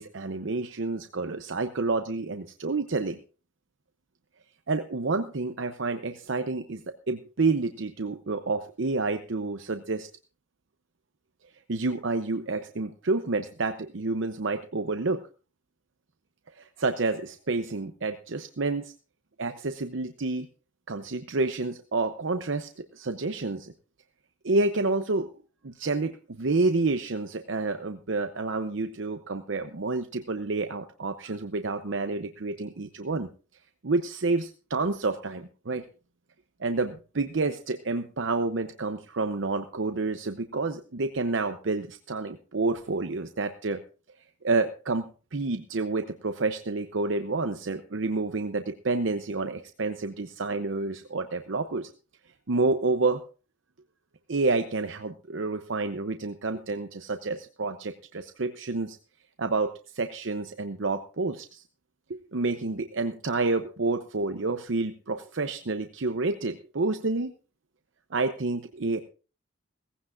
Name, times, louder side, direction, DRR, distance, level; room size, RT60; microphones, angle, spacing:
voice 1, 0.0-3.2 4.7-10.1 11.7-15.2 16.6-18.9 19.4-20.5 20.9-23.7 24.4-25.3 25.6-33.3 33.8-35.9 36.6-43.8 44.4-51.9 52.5-53.2 54.3-59.0 59.4-61.6 62.1-67.3 68.1-69.0, right 3 dB, 70° right, 8 dB, 0.7 m, -29 dB
17.5 x 15.5 x 2.5 m, 0.36 s
head